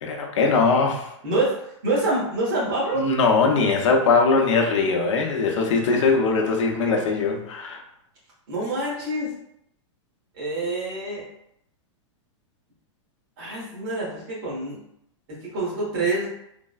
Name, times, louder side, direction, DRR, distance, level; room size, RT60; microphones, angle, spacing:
voice 1, 0.0-1.1 2.9-7.8, left 4 dB, 75° left, 2 dB, 0.6 m, -21 dB
voice 2, 1.2-3.1 8.5-9.3 10.4-11.2 13.4-14.8 15.3-16.3, right 2 dB, 40° right, -6 dB, 1.2 m, -26 dB
3.3 x 2.1 x 2.3 m, 0.76 s
supercardioid pair, 170°, 16 cm